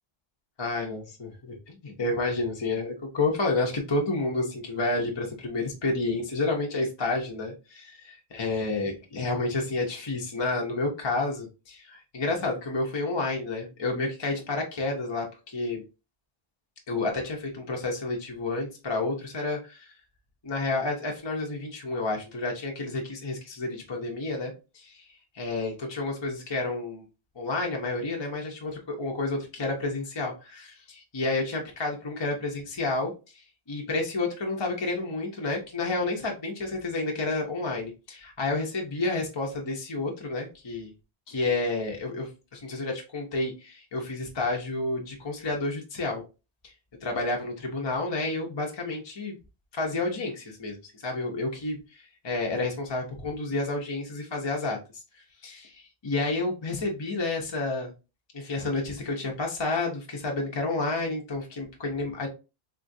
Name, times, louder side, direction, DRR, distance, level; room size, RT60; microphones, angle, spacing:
voice 1, 0.6-15.8 16.9-19.9 20.4-25.1 25.3-27.1 27.4-40.9 41.3-46.2 46.6-46.7 47.0-49.4 49.7-57.9 58.3-62.3, left 2 dB, 30° left, 0 dB, 0.6 m, -30 dB
3.7 x 2.3 x 2.6 m, 0.30 s
omnidirectional pair, 1.1 m